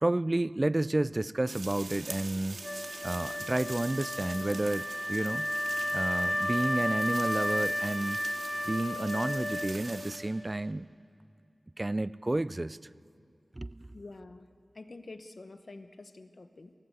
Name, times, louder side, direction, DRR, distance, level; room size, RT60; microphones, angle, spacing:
voice 1, 0.0-2.6 3.0-5.5 5.9-8.2 8.7-10.9 11.8-12.8 13.6-13.9, right 2 dB, 30° right, 18 dB, 0.4 m, -31 dB
sound 1, 1.5-10.2, right 3 dB, 75° right, 2.2 m, -44 dB
Wind instrument woodwind instrument, 2.6-10.2, left 1 dB, 30° left, 1.9 m, -33 dB
voice 2, 13.9-16.7, left 3 dB, 60° left, 9 dB, 1.0 m, -48 dB
23.5 x 18.0 x 7.9 m, 2.4 s
wide cardioid pair, 55°, 0 cm